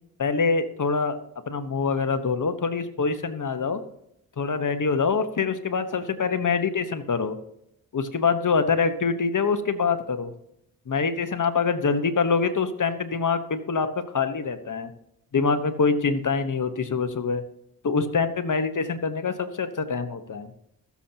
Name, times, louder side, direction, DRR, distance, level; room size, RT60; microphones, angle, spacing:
voice 1, 0.2-1.2 1.5-3.8 4.4-7.4 7.9-10.3 10.9-14.9 15.3-17.4 17.8-20.5, left 5 dB, 55° left, 9 dB, 1.2 m, -25 dB
20.5 x 7.2 x 2.9 m, 0.78 s
cardioid pair, 55°, 37 cm